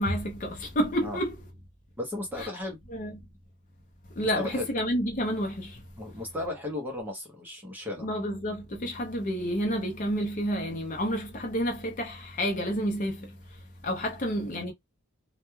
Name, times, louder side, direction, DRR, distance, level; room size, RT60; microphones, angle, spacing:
voice 1, 0.0-1.4 2.4-2.5 2.9-3.1 4.2-5.8 8.0-13.4 13.8-14.7, equal, 35° left, 0.5 m, -29 dB
voice 2, 2.0-2.8 4.2-4.7 6.0-8.1, left 2 dB, 10° right, 0.6 m, -35 dB
2.2 x 2.2 x 3.0 m
head